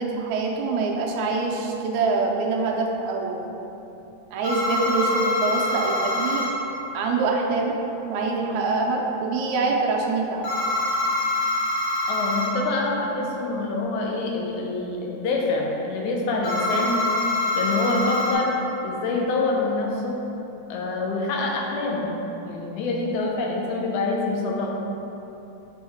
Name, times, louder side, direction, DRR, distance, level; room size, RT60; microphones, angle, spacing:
voice 1, 0.0-3.5 4.3-6.5 6.9-7.8 8.1-10.5, right 3 dB, 80° right, 0 dB, 1.9 m, -25 dB
sound 1, 4.4-6.5 10.4-12.5 16.4-18.3, left 1 dB, 65° left, 2.5 m, -25 dB
voice 2, 12.1-17.0 17.6-18.6 18.8-20.2 20.7-22.1 22.4-24.7, left 3 dB, 80° left, -1 dB, 2.2 m, -26 dB
6.1 x 5.4 x 3.5 m, 2.9 s
omnidirectional pair, 3.4 m